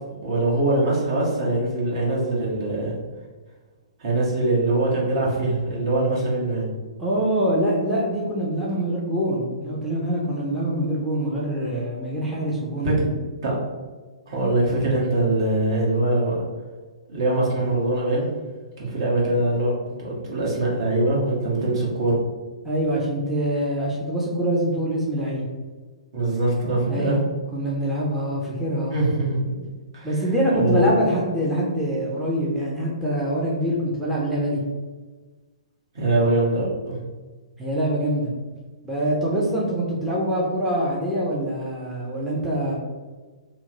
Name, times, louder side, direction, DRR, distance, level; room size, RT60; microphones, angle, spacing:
voice 1, 0.2-3.0 4.0-6.7 12.8-12.9 13.4-13.6 14.3-16.4 17.1-18.3 18.8-22.2 26.1-27.2 28.9-29.4 29.9-30.1 30.5-30.9 35.9-37.0, right 2 dB, 55° right, -5 dB, 1.2 m, -22 dB
voice 2, 7.0-13.1 22.6-25.5 26.9-27.2 27.5-29.0 30.0-34.6 37.6-38.3 38.8-42.8, right 1 dB, 5° right, -7 dB, 0.6 m, -24 dB
2.9 x 2.1 x 3.8 m, 1.3 s
figure-of-eight pair, 120°, 4 cm